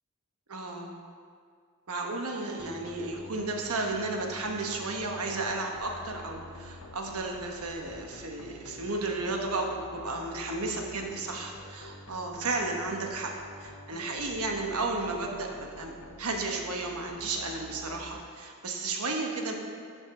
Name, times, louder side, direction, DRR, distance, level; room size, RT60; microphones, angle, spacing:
voice 1, 0.5-0.9 1.9-13.3 13.6-19.5, right 3 dB, 80° right, 2 dB, 1.1 m, -33 dB
sound 1, 2.6-18.2, left 2 dB, 80° left, 0.9 m, -48 dB
12.0 x 5.3 x 3.8 m, 2.1 s
head